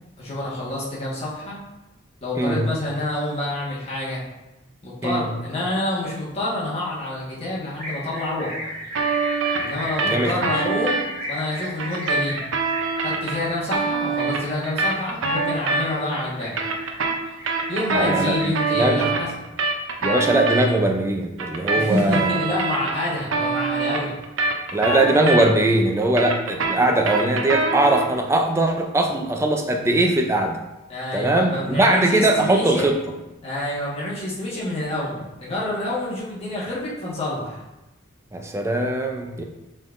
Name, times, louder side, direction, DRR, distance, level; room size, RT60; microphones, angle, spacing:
voice 1, 0.2-1.6 2.2-4.2 4.8-8.7 9.6-12.4 13.0-16.6 17.7-19.3 21.7-24.2 30.9-32.9 33.4-37.6, left 1 dB, 30° left, -6 dB, 1.3 m, -27 dB
sound 1, 7.8-18.7, right 1 dB, 45° right, 1.5 m, -36 dB
sound 2, 8.9-11.0 11.8-16.1 16.4-20.6 21.4-25.7 26.0-28.1, right 3 dB, 75° right, 0.6 m, -24 dB
voice 2, 18.0-18.4 18.8-19.1 20.0-22.3 24.7-30.6 31.1-33.0 38.3-39.4, right 1 dB, 15° right, 3 dB, 0.4 m, -20 dB
5.6 x 3.6 x 2.5 m, 0.99 s
head